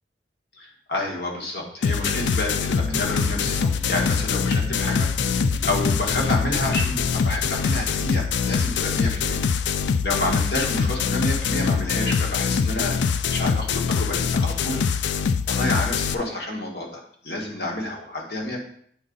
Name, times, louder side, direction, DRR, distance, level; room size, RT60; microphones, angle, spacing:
voice 1, 0.6-9.4 10.0-13.0 13.3-14.8 15.5-18.6, left 1 dB, 60° left, 0 dB, 1.5 m, -29 dB
sound 1, 1.8-16.1, left 6 dB, 85° left, 0.4 m, -24 dB
sound 2, 2.8-11.4, equal, ahead, 0.7 m, -36 dB
8.5 x 4.0 x 3.9 m, 0.62 s
head